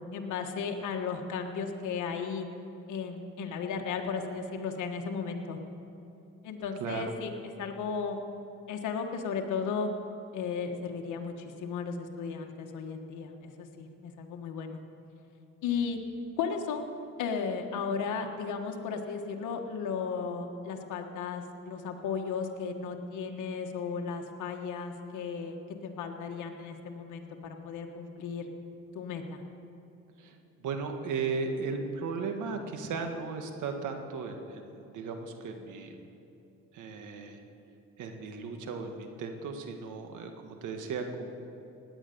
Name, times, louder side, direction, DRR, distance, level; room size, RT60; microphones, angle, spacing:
voice 1, 0.1-2.4 2.9-5.6 6.4-7.3 7.6-8.2 8.7-9.9 10.3-14.8 15.6-16.0 16.4-16.9 17.2-25.6 25.8-28.5 28.9-29.4, left 5 dB, 80° left, 3 dB, 1.5 m, -35 dB
voice 2, 6.8-7.2 30.2-36.0 36.7-37.4 38.0-41.3, right 4 dB, 80° right, 5 dB, 1.7 m, -36 dB
17.0 x 10.0 x 6.9 m, 2.9 s
cardioid pair, 90°, 30 cm